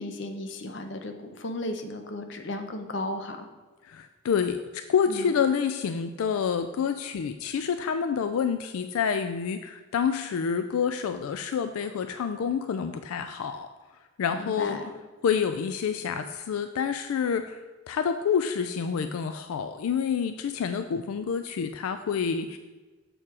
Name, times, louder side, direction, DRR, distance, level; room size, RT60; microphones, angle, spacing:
voice 1, 0.0-3.5 5.1-5.3 14.4-14.9, left 1 dB, 55° left, 5 dB, 0.7 m, -35 dB
voice 2, 3.8-13.7 14.2-14.8 15.2-17.6 17.9-22.6, left 7 dB, 85° left, 9 dB, 0.3 m, -28 dB
7.2 x 4.6 x 4.8 m, 1.3 s
head